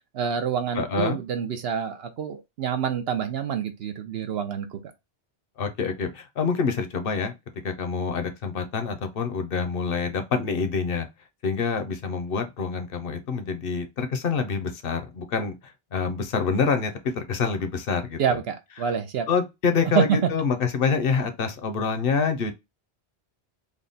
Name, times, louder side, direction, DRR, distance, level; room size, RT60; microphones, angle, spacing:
voice 1, 0.1-4.8 18.2-19.3 20.0-20.3, right 8 dB, 70° right, 0.8 m, -27 dB
voice 2, 0.7-1.2 5.6-7.3 7.6-11.1 11.4-18.4 18.8-18.9 19.3-22.5, left 5 dB, 60° left, 0.9 m, -26 dB
3.6 x 2.2 x 3.9 m
omnidirectional pair, 1.1 m